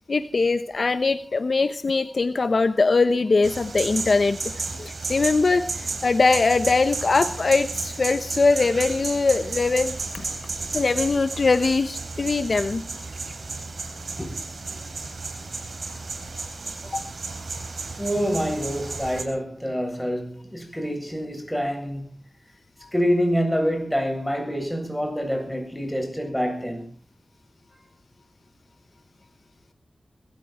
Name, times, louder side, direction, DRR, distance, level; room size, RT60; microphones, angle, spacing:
voice 1, 0.1-4.4 4.8-10.3 10.7-12.8 16.8-17.0 22.8-22.9, left 3 dB, 65° left, 1.0 m, -22 dB
sound 1, 3.4-19.2, right 3 dB, 75° right, 3.6 m, -33 dB
voice 2, 18.0-22.1 22.9-26.9, equal, 5° left, 7.9 m, -26 dB
22.0 x 14.5 x 4.4 m
wide cardioid pair, 60°, 0 cm